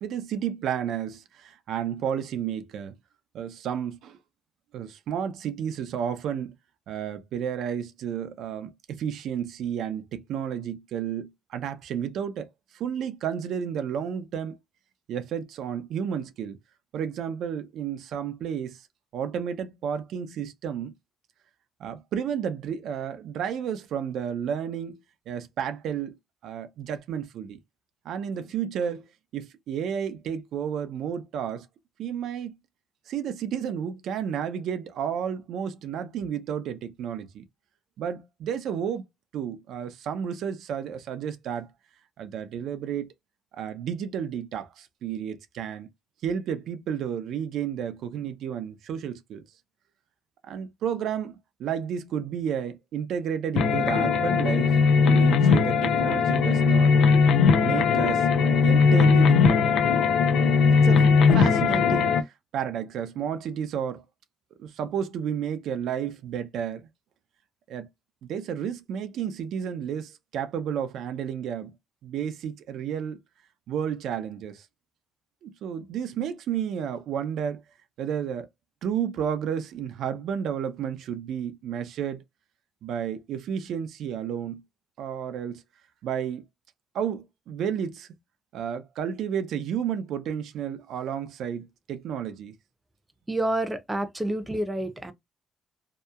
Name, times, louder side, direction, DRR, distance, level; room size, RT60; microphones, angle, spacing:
voice 1, 0.0-2.9 3.3-4.2 4.7-6.5 6.9-12.5 12.7-14.6 15.1-16.6 16.9-18.9 19.1-20.9 21.8-25.0 25.3-26.1 26.4-27.6 28.0-29.0 29.3-31.7 32.0-32.6 33.1-37.4 38.0-39.0 39.3-41.7 42.2-43.1 43.5-45.9 46.2-49.4 50.5-54.8 55.0-57.0 57.6-58.3 58.6-59.9 60.7-61.1 61.3-64.0 64.6-66.9 67.7-67.9 68.2-71.7 72.0-73.2 73.7-74.7 75.4-77.6 78.0-78.5 78.8-82.2 82.8-84.6 85.0-85.6 86.0-86.4 86.9-88.1 88.5-92.6, right 8 dB, 80° right, 0.4 m, -31 dB
sound 1, 53.6-62.2, left 5 dB, 75° left, 0.5 m, -19 dB
voice 2, 93.3-95.1, right 1 dB, 15° right, 0.6 m, -28 dB
2.7 x 2.2 x 2.3 m
cardioid pair, 90°, 0 cm